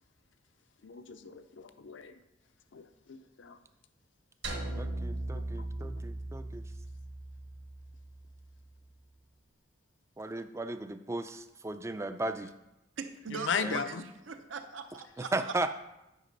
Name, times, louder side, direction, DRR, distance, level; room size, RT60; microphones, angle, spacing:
voice 1, 0.8-2.1 2.7-3.6 4.5-4.6 5.8-5.9 13.4-14.0, left 6 dB, 70° left, 10 dB, 0.5 m, -36 dB
sound 1, 4.4-8.8, right 2 dB, 60° right, 1.3 m, -39 dB
voice 2, 4.8-6.6 10.2-12.5 13.6-13.8 15.2-15.7, right 2 dB, 15° right, 10 dB, 0.3 m, -36 dB
voice 3, 13.0-15.5, right 4 dB, 75° right, 8 dB, 0.7 m, -41 dB
8.2 x 5.0 x 5.3 m, 0.91 s
head